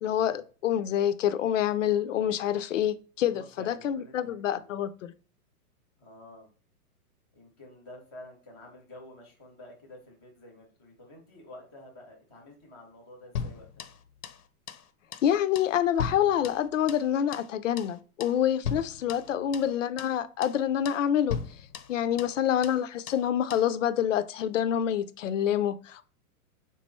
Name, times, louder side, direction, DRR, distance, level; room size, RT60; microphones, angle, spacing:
voice 1, 0.0-5.1 15.2-21.4 21.9-26.0, left 10 dB, 60° left, 0.5 m, -27 dB
voice 2, 3.3-4.7 6.0-6.5 7.3-13.9 19.2-19.6 22.1-22.4, left 1 dB, 5° right, 0.3 m, -50 dB
sound 1, 13.4-14.4 14.7-14.9 15.1-15.3 15.6-17.1 17.3-17.5 17.8-18.0 18.2-18.4 18.6-19.7 20.0-20.2 20.4-20.6 20.9-21.0 21.3-22.4 22.6-22.8 23.1-23.3 23.5-23.7, left 6 dB, 85° left, 0.7 m, -37 dB
3.8 x 3.0 x 4.3 m
hypercardioid pair, 155°, 45 cm